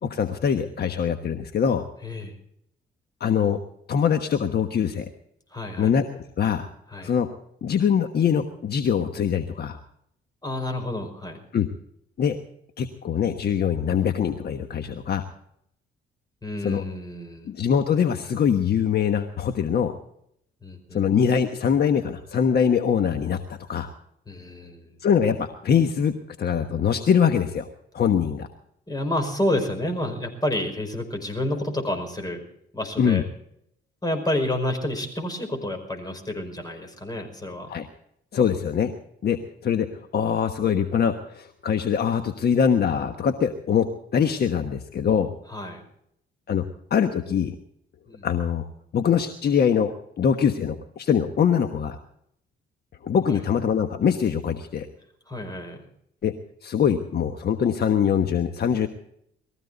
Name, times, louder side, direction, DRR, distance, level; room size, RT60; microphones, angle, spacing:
voice 1, 0.0-1.8 3.2-3.6 3.9-5.1 5.8-6.7 7.0-7.3 7.6-9.8 11.5-11.7 12.2-12.4 12.8-15.3 16.6-16.8 17.5-19.9 20.9-23.9 25.0-27.7 27.9-28.5 33.0-33.2 37.7-37.9 38.3-38.9 39.2-45.3 46.5-47.5 48.2-48.7 48.9-49.9 50.2-52.0 53.0-54.9 56.2-56.3 56.6-58.9, left 7 dB, 55° left, 7 dB, 1.3 m, -23 dB
voice 2, 2.0-2.4 5.5-5.9 6.9-7.1 10.4-11.4 16.4-17.5 20.6-21.0 24.3-25.0 28.9-32.4 32.7-33.3 34.0-37.7 45.5-45.8 48.1-48.3 53.3-53.4 55.3-55.8, left 1 dB, 20° left, 4 dB, 5.3 m, -29 dB
21.0 x 15.0 x 4.0 m, 0.72 s
cardioid pair, 90°, 20 cm